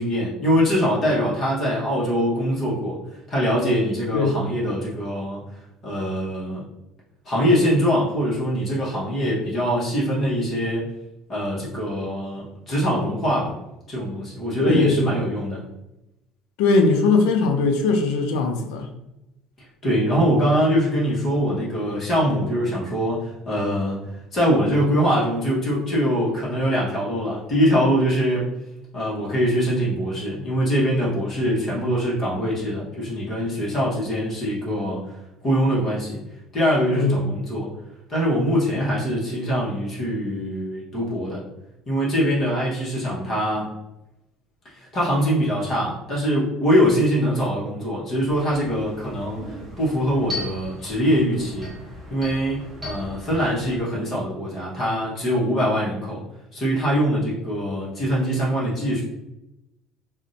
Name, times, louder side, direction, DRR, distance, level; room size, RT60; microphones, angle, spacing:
voice 1, 0.0-3.0 3.3-5.4 5.8-6.6 7.3-10.9 11.3-13.5 13.9-15.6 19.8-24.0 24.3-28.5 28.9-35.0 35.4-36.2 36.5-37.7 38.1-41.4 41.9-43.7 44.9-51.7 52.1-56.2 56.5-59.0, equal, 25° left, -6 dB, 0.9 m, -23 dB
voice 2, 4.1-4.4 14.6-15.2 16.6-18.9 36.9-37.2, left 3 dB, 80° left, 5 dB, 0.5 m, -20 dB
sound 1, 48.2-53.8, left 2 dB, 10° right, 1.1 m, -38 dB
2.5 x 2.1 x 3.9 m, 0.93 s
cardioid pair, 175°, 0 cm